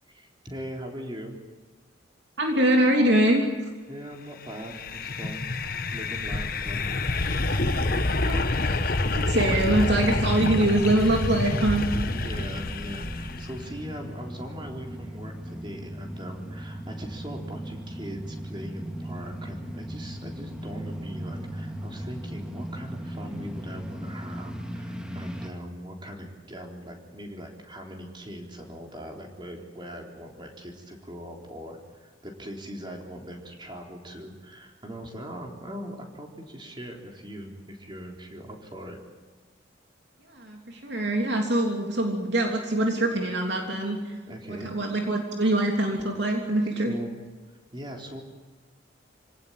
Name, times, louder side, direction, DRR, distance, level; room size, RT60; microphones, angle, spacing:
voice 1, 0.1-1.4 3.9-5.5 5.9-7.4 7.6-8.2 12.1-39.0 44.3-44.7 46.9-47.2 47.7-48.2, equal, 25° right, 1 dB, 3.9 m, -40 dB
voice 2, 2.4-3.5 8.2-8.4 9.1-11.8 40.3-44.2 44.5-46.9, right 1 dB, 60° right, 1 dB, 3.3 m, -24 dB
sound 1, 4.5-13.7, left 2 dB, 45° left, 1.3 m, -27 dB
sound 2, 7.7-25.5, equal, 5° right, 2.1 m, -38 dB
26.5 x 18.5 x 8.9 m, 1.4 s
head